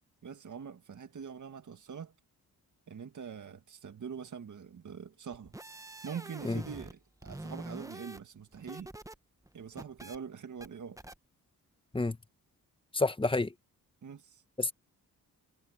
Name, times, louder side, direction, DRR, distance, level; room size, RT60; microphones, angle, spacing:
voice 1, 0.2-2.1 2.9-5.5 6.0-8.9 9.5-11.0 14.0-14.4, right 7 dB, 55° right, 2.0 m, -44 dB
sound 1, 5.3-7.0 7.2-9.2 9.5-10.2 10.6-10.7 11.0-11.2, right 1 dB, 10° right, 1.2 m, -45 dB
voice 2, 12.9-13.5 14.6-14.7, left 2 dB, 15° left, 1.3 m, -28 dB
cardioid pair, 65°, 36 cm